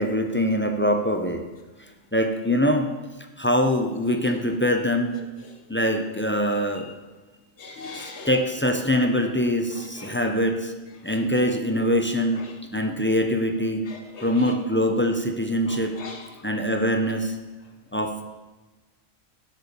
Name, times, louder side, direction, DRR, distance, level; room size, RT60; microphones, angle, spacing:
voice 1, 0.0-1.4 2.1-2.9 3.4-5.2 5.7-6.9 7.9-10.7 11.0-12.4 12.7-13.9 14.2-16.0 16.4-17.4 17.9-18.3, equal, 15° left, 5 dB, 0.4 m, -23 dB
voice 2, 7.6-8.3 10.0-10.2 11.0-11.2 12.3-12.5 13.9-14.5 15.7-16.3, left 3 dB, 60° left, 3 dB, 1.5 m, -40 dB
8.6 x 6.2 x 6.9 m, 1.2 s
omnidirectional pair, 1.3 m